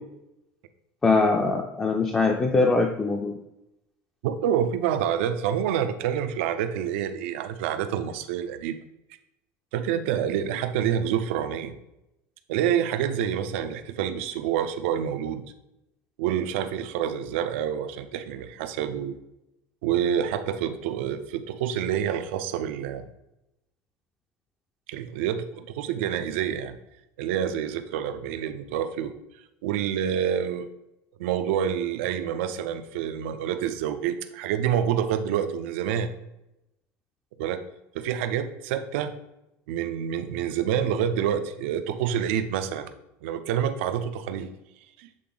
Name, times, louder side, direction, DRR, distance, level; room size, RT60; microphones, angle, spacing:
voice 1, 1.0-3.3, left 3 dB, 10° left, 1 dB, 0.4 m, -22 dB
voice 2, 4.2-8.8 9.7-11.8 12.5-15.4 16.2-19.2 19.8-23.1 24.9-26.8 27.2-29.1 29.6-30.7 31.2-36.1 37.4-37.6 37.9-39.1 39.7-42.9 43.2-44.5 45.0-45.1, right 9 dB, 85° right, 10 dB, 0.5 m, -27 dB
7.7 x 3.7 x 3.9 m, 0.89 s
cardioid pair, 175°, 7 cm